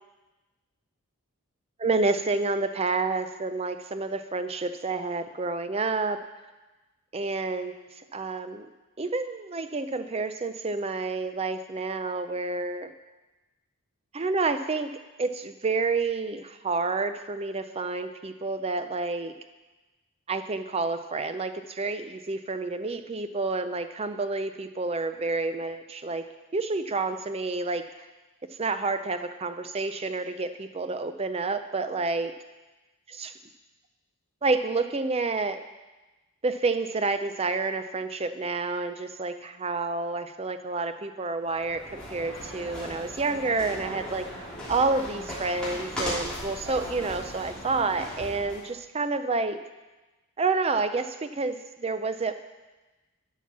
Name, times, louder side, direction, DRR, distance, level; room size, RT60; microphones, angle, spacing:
voice 1, 1.8-6.2 7.1-7.8 8.1-8.7 9.0-12.9 14.1-19.3 20.3-26.2 26.5-27.8 28.6-32.3 33.1-33.3 34.4-35.6 36.4-44.3 44.7-49.6 50.4-52.3, right 3 dB, 25° right, 9 dB, 0.5 m, -29 dB
sound 1, 41.5-48.7, equal, 5° left, 3.0 m, -37 dB
12.0 x 5.8 x 5.9 m, 1.1 s
head